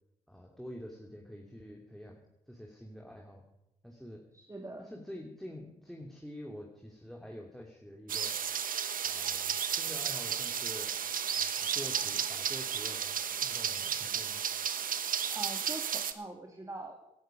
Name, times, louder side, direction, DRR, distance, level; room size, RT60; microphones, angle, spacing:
voice 1, 0.3-2.2 2.5-3.4 3.8-4.2 4.8-8.4 9.0-10.9 11.4-14.4, equal, ahead, 0 dB, 2.8 m, -47 dB
voice 2, 4.3-4.9 15.3-17.0, right 2 dB, 20° right, 3 dB, 2.2 m, -43 dB
sound 1, 8.1-16.1, right 8 dB, 60° right, 1.2 m, -33 dB
17.0 x 11.5 x 5.2 m, 0.89 s
hypercardioid pair, 45°, 16 cm